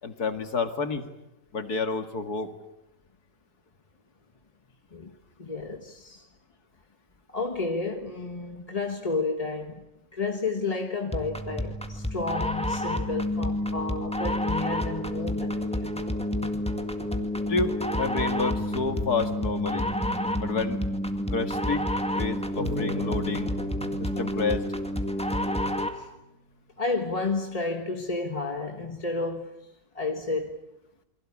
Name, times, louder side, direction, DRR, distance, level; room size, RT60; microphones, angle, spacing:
voice 1, 0.0-1.1 1.5-2.5 17.5-19.9 20.4-20.8 21.3-21.8 22.1-23.5 24.0-24.7, left 4 dB, 80° left, 2.7 m, -29 dB
voice 2, 5.4-6.3 7.3-15.8 25.9-26.1 26.8-29.6 29.9-30.6, left 3 dB, 25° left, 1.4 m, -31 dB
sound 1, 11.1-26.1, left 1 dB, 5° left, 1.9 m, -29 dB
sound 2, 22.6-26.0, left 2 dB, 60° right, 5.5 m, -39 dB
28.5 x 24.0 x 8.7 m
omnidirectional pair, 1.6 m